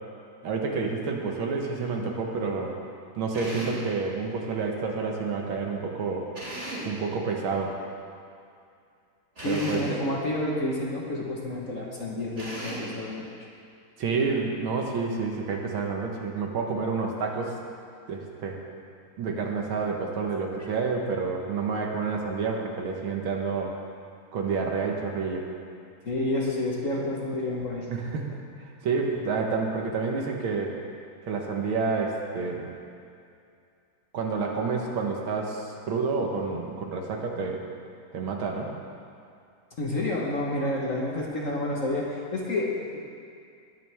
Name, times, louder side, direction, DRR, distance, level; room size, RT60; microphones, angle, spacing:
voice 1, 0.4-2.8 3.2-6.3 6.9-7.8 9.4-9.8 14.0-17.5 18.1-18.6 19.2-23.8 24.3-25.5 27.9-28.3 28.8-30.8 31.2-32.7 34.1-37.6 38.1-38.7, right 4 dB, 70° right, 1 dB, 2.0 m, -29 dB
Drill, 3.3-3.9 6.3-7.0 9.4-10.0 12.4-13.0, right 1 dB, 30° right, 3.1 m, -36 dB
voice 2, 9.4-13.2 20.6-20.7 26.0-27.9 39.8-43.0, left 1 dB, 45° left, -3 dB, 1.5 m, -29 dB
19.5 x 9.4 x 3.5 m, 2.4 s
omnidirectional pair, 2.3 m